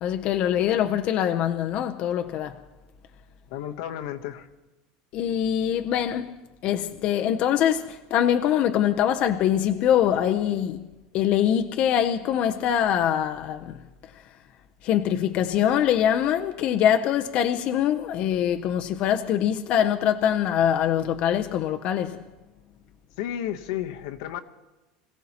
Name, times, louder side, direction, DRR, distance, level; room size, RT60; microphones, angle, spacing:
voice 1, 0.0-2.6 5.1-6.3 6.6-10.9 11.1-13.8 14.8-22.2, left 10 dB, 45° left, 0.6 m, -23 dB
voice 2, 3.5-4.5 23.2-24.4, left 11 dB, 75° left, 0.9 m, -32 dB
25.5 x 16.5 x 2.9 m
supercardioid pair, 145°, 3 cm